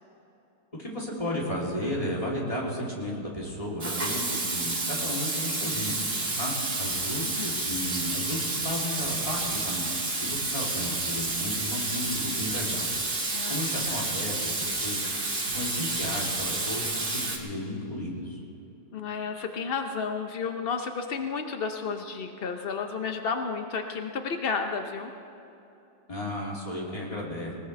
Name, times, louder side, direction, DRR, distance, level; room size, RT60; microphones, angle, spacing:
voice 1, 0.7-9.9 10.2-12.9 13.5-15.0 15.5-18.4 26.1-27.5, left 1 dB, 20° left, -4 dB, 2.9 m, -34 dB
Water tap faucet / Sink (filling or washing), 3.8-17.4, right 2 dB, 30° right, 1.7 m, -30 dB
sound 1, 6.8-7.0 7.7-7.8 8.5-8.7 9.0-9.5 10.3-10.4 11.1-11.3 12.0-12.1 12.4-12.6 12.9-13.0 13.7-13.9 14.6-14.7 15.5-15.6 15.9-16.0 16.3-16.5 17.2-17.3, right 2 dB, 60° right, 4.7 m, -47 dB
voice 2, 18.9-25.1, left 5 dB, 70° left, 5 dB, 0.5 m, -32 dB
20.0 x 19.5 x 3.3 m, 3.0 s
omnidirectional pair, 2.0 m